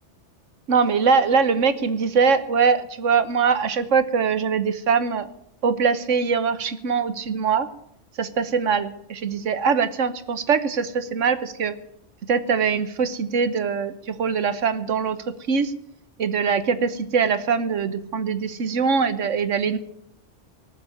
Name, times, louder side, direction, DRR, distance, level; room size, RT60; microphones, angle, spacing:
voice 1, 0.7-5.3 5.6-7.7 8.2-11.7 12.3-15.2 15.5-15.7 16.2-19.8, right 5 dB, 90° right, 13 dB, 1.4 m, -22 dB
19.0 x 7.7 x 9.6 m, 0.75 s
omnidirectional pair, 1.2 m